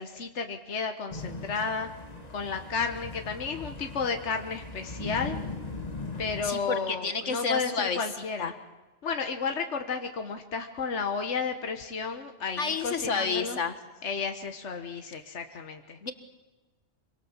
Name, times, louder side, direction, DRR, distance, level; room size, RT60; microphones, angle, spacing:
voice 1, 0.0-1.9 2.3-5.4 6.2-8.5 9.0-13.6 14.0-16.0, left 5 dB, 70° left, 5 dB, 1.6 m, -32 dB
sound 1, 1.1-6.5, left 3 dB, 35° left, 2.0 m, -39 dB
voice 2, 6.4-8.1 8.4-8.5 12.6-13.8 16.0-16.1, left 5 dB, 90° left, 9 dB, 2.1 m, -30 dB
26.0 x 24.5 x 7.4 m, 1.2 s
omnidirectional pair, 1.2 m